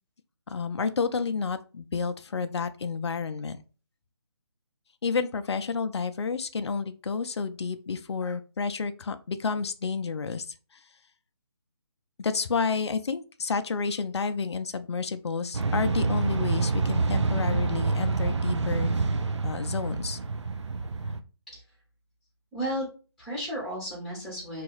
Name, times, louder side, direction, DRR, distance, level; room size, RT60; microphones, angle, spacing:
voice 1, 0.5-3.6 5.0-10.5 12.2-18.9 19.4-20.2, left 5 dB, 70° left, 11 dB, 0.4 m, -30 dB
sound 1, 15.5-21.2, right 3 dB, 85° right, 0.4 m, -27 dB
voice 2, 22.5-22.9 23.2-24.6, equal, ahead, -6 dB, 0.9 m, -33 dB
2.9 x 2.3 x 3.1 m, 0.35 s
figure-of-eight pair, 155°, 15 cm